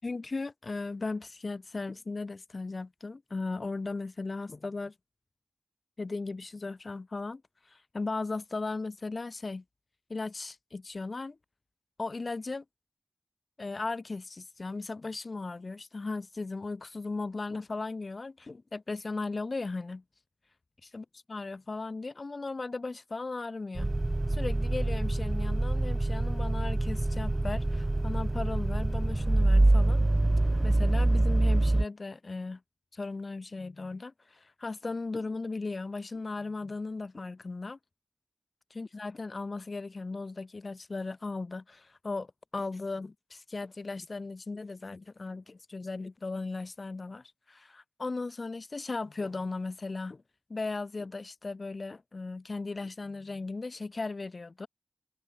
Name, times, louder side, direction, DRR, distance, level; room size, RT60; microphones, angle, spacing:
voice 1, 0.0-4.9 6.0-9.6 10.1-11.4 12.0-12.6 13.6-20.0 20.9-23.9 24.3-30.0 30.6-32.6 32.9-37.8 38.7-50.2 50.5-54.7, left 3 dB, 50° left, 6.3 m, -37 dB
sound 1, 23.7-31.8, right 2 dB, 30° right, 1.6 m, -26 dB
open air
cardioid pair, 50°, 0 cm